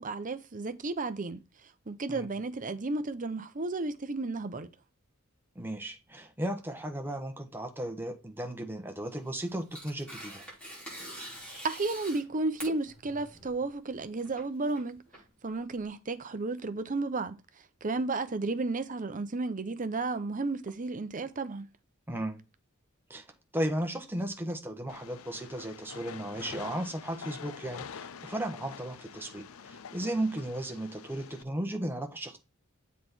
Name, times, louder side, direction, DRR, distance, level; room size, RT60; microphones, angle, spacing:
voice 1, 0.0-1.4 1.9-4.7 11.6-15.0 15.4-17.4 17.8-21.7, right 3 dB, 40° right, 0.8 m, -33 dB
voice 2, 5.5-10.4 22.1-22.4 23.1-23.2 23.5-32.4, right 1 dB, 10° right, 1.3 m, -35 dB
Tearing, 9.1-15.8, right 1 dB, 5° left, 4.9 m, -46 dB
Train, 24.9-31.4, left 6 dB, 75° left, 0.5 m, -46 dB
7.6 x 4.2 x 4.5 m
head